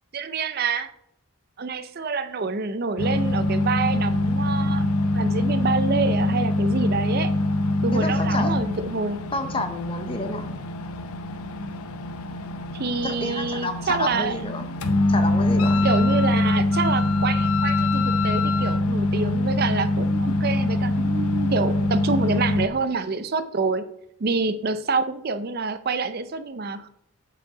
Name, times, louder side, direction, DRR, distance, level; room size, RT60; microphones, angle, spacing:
voice 1, 0.1-0.9 1.6-4.9 5.1-7.3 7.8-9.2 12.7-14.4 15.8-23.8 24.2-26.9, right 4 dB, 45° right, 11 dB, 0.5 m, -27 dB
sound 1, 3.0-22.7, left 1 dB, 85° left, 0.7 m, -24 dB
voice 2, 7.9-8.5 9.3-10.5 13.0-14.8 15.1-15.9, left 2 dB, 25° left, 7 dB, 0.8 m, -29 dB
Wind instrument woodwind instrument, 15.6-18.8, left 9 dB, 65° left, 0.3 m, -29 dB
8.5 x 4.9 x 4.9 m, 0.75 s
head